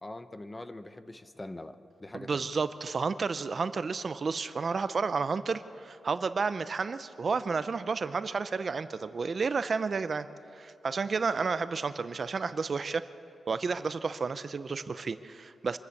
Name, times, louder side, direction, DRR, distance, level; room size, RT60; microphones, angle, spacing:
voice 1, 0.0-2.5, left 2 dB, 20° left, 11 dB, 0.8 m, -43 dB
voice 2, 2.1-10.3 10.5-13.0 13.5-15.8, right 4 dB, 45° right, 13 dB, 0.5 m, -31 dB
25.5 x 13.5 x 8.4 m, 2.8 s
wide cardioid pair, 125°, 0 cm